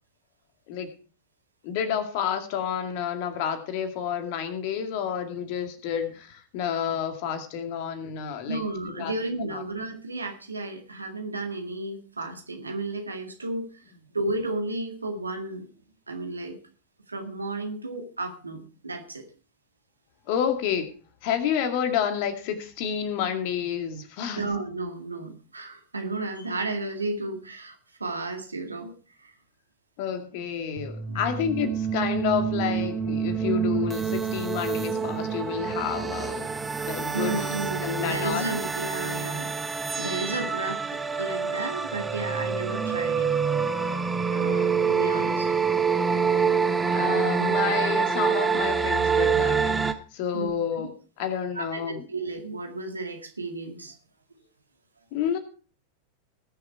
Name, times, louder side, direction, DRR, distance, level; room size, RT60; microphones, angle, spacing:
voice 1, 1.6-8.6 8.9-9.1 9.4-9.6 20.3-20.9 21.2-24.5 30.0-36.5 36.9-37.5 37.8-38.4 46.9-50.9 51.2-52.1 55.1-55.4, left 8 dB, 45° left, 7 dB, 2.2 m, -29 dB
voice 2, 8.5-13.7 14.1-15.7 16.1-16.6 17.1-19.2 24.4-28.9 29.2-29.3 31.1-31.4 37.1-39.7 40.0-43.3 44.3-45.5 50.3-50.5 50.8-50.9 51.5-53.9, right 2 dB, 80° right, 5 dB, 2.1 m, -33 dB
sound 1, 30.8-49.9, right 6 dB, 15° right, 1.0 m, -26 dB
19.5 x 7.0 x 4.6 m, 0.38 s
figure-of-eight pair, 90°, 0 cm